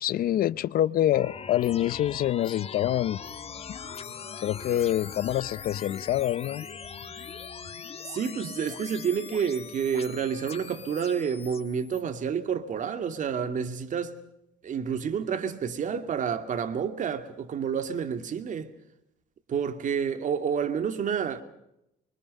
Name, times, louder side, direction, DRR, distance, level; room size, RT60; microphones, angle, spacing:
voice 1, 0.0-3.2 3.7-3.8 4.4-6.7, left 12 dB, 60° left, 0.8 m, -26 dB
sound 1, 1.1-12.0, left 6 dB, 35° left, 1.5 m, -41 dB
voice 2, 8.1-14.1 14.6-18.7 19.5-21.4, right 7 dB, 50° right, 2.4 m, -29 dB
24.5 x 24.5 x 5.5 m
cardioid pair, 110°, 17 cm